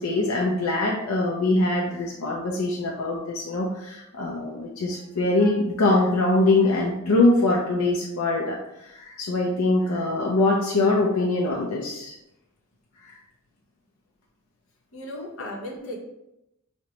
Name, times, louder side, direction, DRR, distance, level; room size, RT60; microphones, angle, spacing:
voice 1, 0.0-12.1 13.0-13.2, left 2 dB, 90° left, -1 dB, 0.5 m, -23 dB
voice 2, 14.9-16.0, left 1 dB, 65° left, -1 dB, 0.8 m, -36 dB
4.9 x 2.1 x 2.9 m, 0.86 s
head